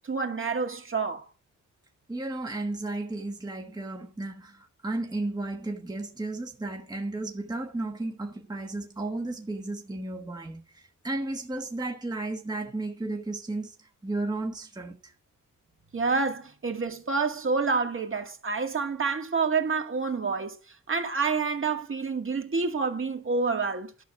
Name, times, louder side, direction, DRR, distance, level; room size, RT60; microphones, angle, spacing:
voice 1, 0.1-1.3 15.9-20.6 20.9-23.9, right 4 dB, 40° right, 2.1 m, -28 dB
voice 2, 2.1-15.1, right 2 dB, 10° right, 1.4 m, -34 dB
12.0 x 6.2 x 6.9 m
cardioid pair, 100°, 32 cm